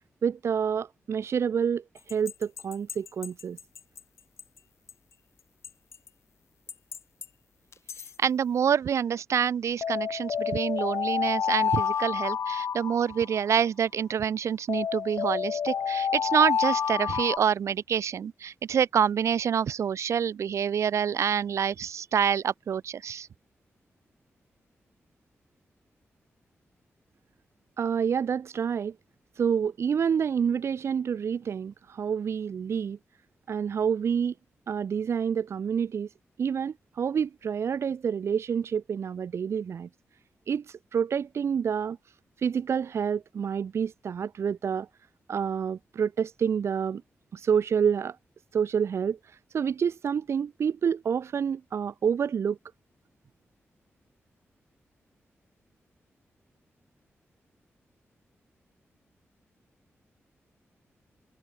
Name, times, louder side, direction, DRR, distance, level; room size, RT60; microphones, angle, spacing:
voice 1, 0.2-3.6 27.8-29.0 29.4-33.0 33.5-34.3 34.7-36.1 36.4-39.9 40.5-42.0 42.4-44.9 45.3-47.0 47.3-48.2 48.5-52.6, right 7 dB, 65° right, 4.5 m, -28 dB
sound 1, 2.1-4.0 4.4-4.5 4.9-5.0 5.6-6.1 6.7-7.2 7.7-8.1 9.8-13.6 14.7-17.4, left 7 dB, 70° left, 3.0 m, -29 dB
voice 2, 8.2-23.3, right 8 dB, 90° right, 6.0 m, -27 dB
wide cardioid pair, 165°, 5 cm